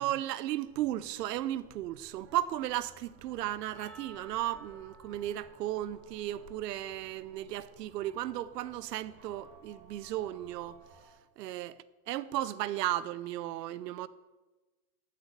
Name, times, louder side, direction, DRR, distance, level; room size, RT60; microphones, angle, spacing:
voice 1, 0.0-10.8 11.4-14.1, right 13 dB, 85° right, 0.8 m, -35 dB
sound 1, 0.6-11.1, right 3 dB, 30° right, 3.1 m, -58 dB
Percussion, 3.7-8.3, right 2 dB, 5° left, 3.8 m, -57 dB
14.0 x 6.7 x 6.8 m
supercardioid pair, 130°, 47 cm